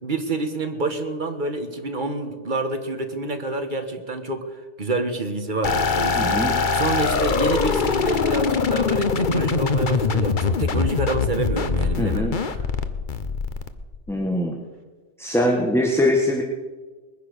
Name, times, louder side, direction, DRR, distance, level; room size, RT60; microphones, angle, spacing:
voice 1, 0.0-12.6, right 2 dB, 45° right, 6 dB, 1.7 m, -28 dB
sound 1, 5.6-14.1, left 5 dB, 45° left, 1.0 m, -23 dB
voice 2, 6.1-6.6 12.0-12.3 14.1-14.6 15.2-16.4, left 1 dB, ahead, 0 dB, 1.6 m, -22 dB
21.0 x 10.5 x 6.7 m, 1.3 s
omnidirectional pair, 1.2 m